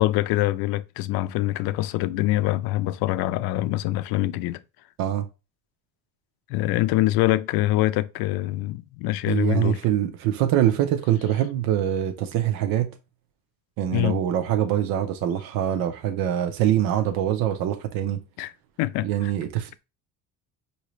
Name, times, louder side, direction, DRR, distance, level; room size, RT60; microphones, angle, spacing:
voice 1, 0.0-4.6 6.5-9.8 13.9-14.2 18.4-18.5 18.8-19.3, left 16 dB, 70° left, 0.5 m, -24 dB
voice 2, 9.3-13.0 13.8-18.2 19.0-19.8, right 11 dB, 65° right, 0.8 m, -24 dB
5.7 x 2.8 x 3.1 m
cardioid pair, 170°, 37 cm